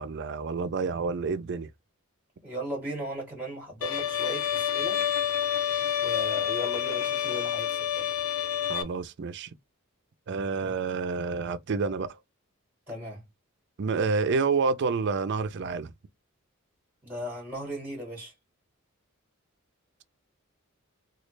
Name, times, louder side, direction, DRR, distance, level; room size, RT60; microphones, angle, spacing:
voice 1, 0.0-1.7 8.7-9.5 10.3-12.1 13.8-15.9, right 4 dB, 55° right, 0.4 m, -28 dB
voice 2, 2.4-5.1 6.0-8.2 10.6-10.7 12.9-13.2 17.0-18.3, equal, 10° right, 1.9 m, -37 dB
Bowed string instrument, 3.8-8.8, left 10 dB, 75° left, 0.5 m, -28 dB
3.1 x 2.4 x 3.2 m
head